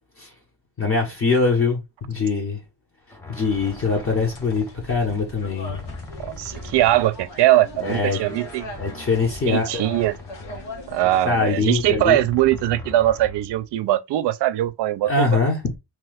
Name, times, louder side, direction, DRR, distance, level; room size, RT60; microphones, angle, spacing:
voice 1, 0.8-1.8 2.1-2.6 3.3-5.8 7.8-8.2 8.8-9.8 11.2-12.2 15.0-15.6, left 4 dB, 30° left, 0.9 m, -22 dB
sound 1, 3.1-5.3 5.7-7.5 8.0-11.3 11.8-13.7, left 2 dB, 5° left, 0.5 m, -40 dB
sound 2, 3.5-11.3, left 1 dB, 85° left, 1.3 m, -40 dB
voice 2, 6.2-8.6 9.5-10.2 10.9-15.3, right 14 dB, 75° right, 0.5 m, -21 dB
3.0 x 2.3 x 3.3 m
cardioid pair, 120°, 42 cm